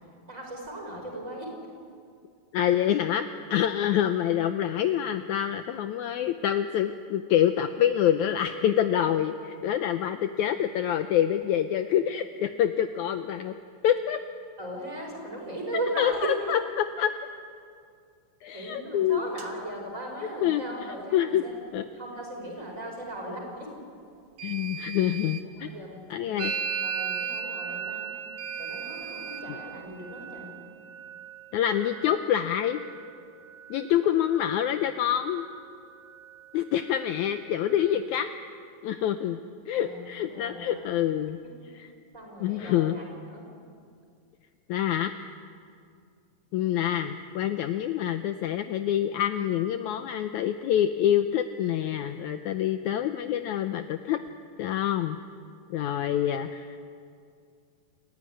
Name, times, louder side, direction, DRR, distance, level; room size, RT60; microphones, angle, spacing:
voice 1, 0.3-1.5 14.6-16.5 18.5-21.6 21.9-23.8 25.6-28.1 28.6-30.5 37.0-37.1 39.7-40.9 42.1-43.4, right 1 dB, 20° right, -1 dB, 5.7 m, -37 dB
voice 2, 2.5-9.3 9.6-13.6 13.8-14.2 16.0-17.1 18.4-19.2 20.4-20.6 21.1-21.4 21.7-21.8 24.4-25.7 26.1-26.5 29.5-29.6 31.5-32.8 33.7-35.5 36.5-38.3 38.8-39.4 39.7-41.4 41.7-41.9 42.4-43.0 44.7-45.1 46.5-54.2 54.6-55.2 55.7-56.8, left 10 dB, 75° left, 8 dB, 1.9 m, -26 dB
sound 1, 19.4-19.5 24.4-25.5 26.4-27.5 28.4-29.5, right 8 dB, 45° right, 1.4 m, -40 dB
Musical instrument, 26.4-34.0 34.3-34.9 35.1-35.7 36.0-38.0, right 7 dB, 80° right, 1.0 m, -38 dB
28.5 x 15.0 x 9.9 m, 2.3 s
omnidirectional pair, 3.8 m